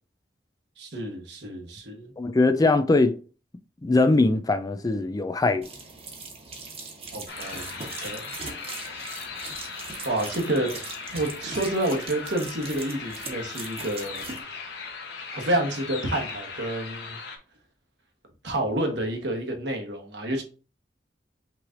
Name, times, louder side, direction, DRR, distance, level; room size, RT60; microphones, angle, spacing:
voice 1, 0.8-2.1 7.1-8.2 9.0-9.1 10.0-10.8 11.1-14.3 15.3-17.2 18.4-20.4, right 1 dB, 75° right, 1.2 m, -29 dB
voice 2, 2.2-3.1 3.8-5.6, left 2 dB, 20° left, 0.4 m, -21 dB
sound 1, 5.6-14.4, right 3 dB, 35° right, 1.1 m, -40 dB
sound 2, 7.3-17.4, left 5 dB, 70° left, 1.1 m, -38 dB
5.9 x 3.2 x 2.5 m
head